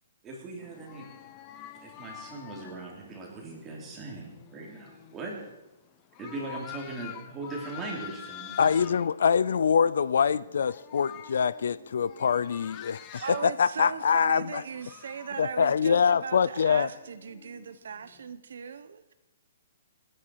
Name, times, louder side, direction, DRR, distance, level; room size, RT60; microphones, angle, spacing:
voice 1, 0.2-1.1 1.8-5.4 6.2-8.9, right 3 dB, 10° right, -2 dB, 3.2 m, -39 dB
sound 1, 0.6-9.1 9.7-10.0 10.3-15.4 16.4-18.3, left 11 dB, 20° left, 0.7 m, -47 dB
voice 2, 8.6-13.0 13.4-14.6 15.4-16.9, left 7 dB, 65° left, 19 dB, 0.5 m, -24 dB
voice 3, 13.1-19.1, right 6 dB, 65° right, 12 dB, 1.0 m, -38 dB
28.5 x 10.0 x 4.7 m, 0.95 s
hypercardioid pair, 175°, 0 cm